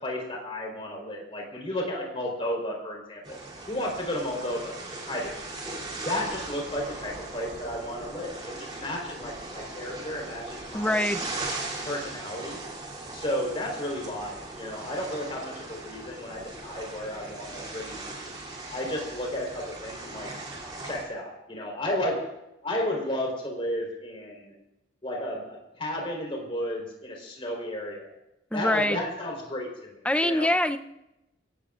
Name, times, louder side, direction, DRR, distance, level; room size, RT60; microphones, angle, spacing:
voice 1, 0.0-3.4 3.7-4.7 5.1-5.3 6.0-11.0 11.8-12.6 13.1-18.3 18.7-20.3 20.8-22.2 22.6-24.5 25.0-28.1 28.5-29.9 30.2-30.5, left 1 dB, 30° left, -1 dB, 4.0 m, -33 dB
sound 1, 3.2-21.1, right 2 dB, 25° right, 3.0 m, -39 dB
voice 2, 10.7-11.2 28.5-29.0 30.0-30.8, left 1 dB, 5° left, 8 dB, 0.6 m, -24 dB
28.5 x 17.0 x 2.5 m, 0.91 s
head